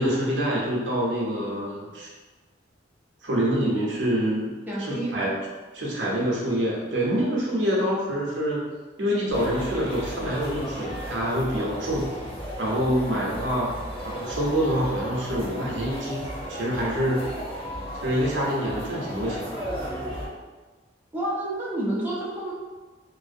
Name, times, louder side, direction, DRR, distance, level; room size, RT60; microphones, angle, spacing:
voice 1, 0.0-2.1 3.2-4.5 4.9-5.4 5.7-8.6 9.0-12.1 12.6-13.8 14.0-17.2 18.0-19.6, equal, 80° right, -4 dB, 0.7 m, -26 dB
voice 2, 4.7-5.3 21.1-22.5, right 1 dB, 10° right, -7 dB, 0.5 m, -29 dB
sound 1, 9.3-20.3, equal, 30° left, 0.6 m, -35 dB
2.5 x 2.0 x 2.5 m, 1.3 s
head